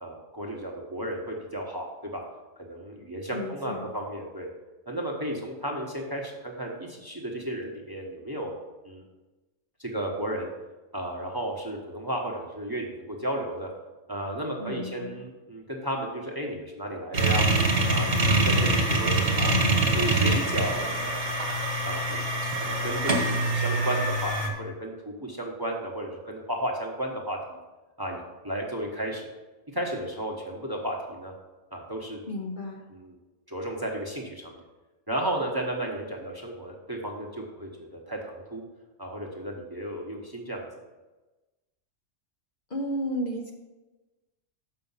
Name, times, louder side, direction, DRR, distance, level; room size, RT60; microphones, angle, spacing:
voice 1, 0.0-1.9 2.1-2.2 2.6-4.5 4.9-8.5 8.8-9.0 9.8-10.5 10.9-13.7 14.1-17.4 17.9-19.5 19.9-21.3 21.8-22.3 22.5-27.6 28.0-29.2 29.7-31.3 31.7-32.2 33.0-33.1 33.5-34.6 35.1-38.6 39.0-40.7, right 1 dB, 20° right, 0 dB, 1.0 m, -33 dB
voice 2, 3.3-3.9 14.6-15.2 32.3-32.9 42.7-43.5, equal, 45° left, 1 dB, 0.9 m, -33 dB
sound 1, 17.1-24.5, right 2 dB, 50° right, 1.5 m, -24 dB
6.8 x 5.6 x 5.6 m, 1.1 s
omnidirectional pair, 1.3 m